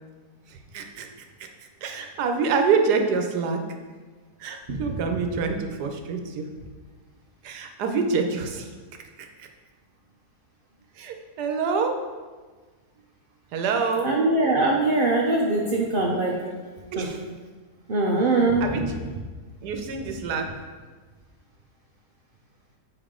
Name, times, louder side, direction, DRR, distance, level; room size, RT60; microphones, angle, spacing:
voice 1, 0.5-1.1 1.4-1.5 1.8-3.6 4.4-6.5 7.4-8.7 9.2-9.5 10.9-11.9 13.5-14.1 16.4-16.5 16.9-17.2 18.6-18.8 19.6-20.5, right 5 dB, 80° right, 4 dB, 1.3 m, -26 dB
voice 2, 14.0-16.3 17.0-17.1 17.9-18.6, right 2 dB, 50° right, -2 dB, 0.6 m, -22 dB
6.9 x 4.6 x 3.7 m, 1.4 s
omnidirectional pair, 1.7 m